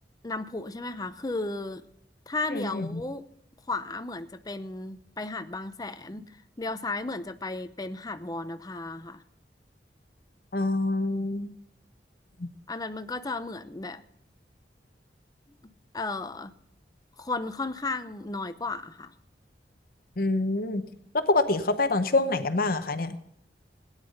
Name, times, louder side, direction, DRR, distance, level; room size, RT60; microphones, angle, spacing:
voice 1, 0.2-1.8 2.3-3.2 3.7-6.2 6.6-9.2 12.7-14.0 15.9-16.5 17.2-19.1, left 3 dB, 20° left, 10 dB, 0.7 m, -34 dB
voice 2, 2.5-3.0 10.5-11.5 12.4-12.5 20.2-20.8 21.3-23.2, left 2 dB, 55° left, 10 dB, 0.9 m, -26 dB
17.0 x 9.8 x 5.3 m, 0.73 s
head